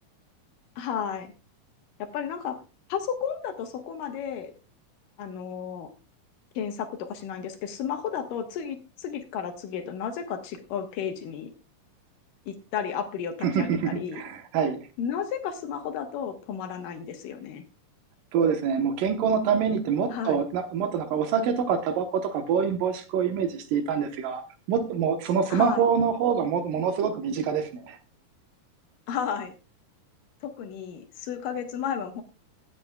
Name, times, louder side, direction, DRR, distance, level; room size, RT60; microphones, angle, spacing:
voice 1, 0.8-1.3 2.0-2.6 2.9-4.5 5.2-5.9 6.6-11.5 12.5-14.2 15.0-17.6 20.1-20.4 25.5-25.9 29.1-29.5 30.4-32.2, left 8 dB, 80° left, 6 dB, 2.7 m, -33 dB
voice 2, 13.4-14.8 18.3-24.4 24.7-28.0, right 7 dB, 80° right, 7 dB, 2.7 m, -25 dB
17.0 x 8.2 x 2.3 m, 0.30 s
omnidirectional pair, 3.8 m